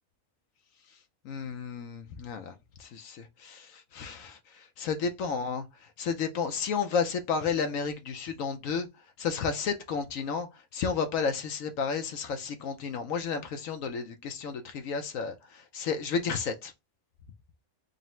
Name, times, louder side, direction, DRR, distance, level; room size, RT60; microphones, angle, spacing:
voice 1, 1.2-2.5 2.8-5.6 6.0-8.9 9.2-16.7, left 5 dB, 70° left, 1.0 m, -32 dB
3.9 x 2.0 x 4.2 m
omnidirectional pair, 1.5 m